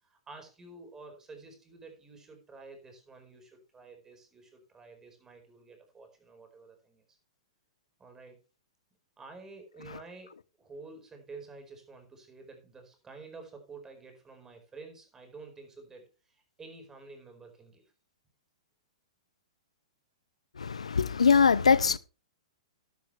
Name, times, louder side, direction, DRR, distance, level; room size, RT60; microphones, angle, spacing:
voice 1, 0.0-7.2 8.0-8.4 9.2-17.8, right 3 dB, 15° right, 4.7 m, -50 dB
voice 2, 20.6-22.0, left 6 dB, 85° left, 0.7 m, -22 dB
12.0 x 12.0 x 3.3 m
hypercardioid pair, 120°, 3 cm